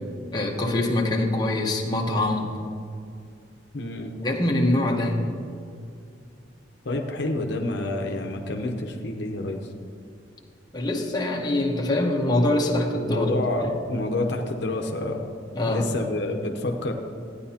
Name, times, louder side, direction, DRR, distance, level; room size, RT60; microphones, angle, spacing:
voice 1, 0.3-2.5 4.2-5.3 10.7-13.3 13.6-13.7 15.5-15.9, left 1 dB, 20° left, 0 dB, 1.0 m, -24 dB
voice 2, 3.7-4.1 6.8-9.6 13.1-15.2 15.7-16.9, left 2 dB, 65° left, 3 dB, 0.8 m, -28 dB
14.5 x 9.8 x 2.9 m, 2.4 s
head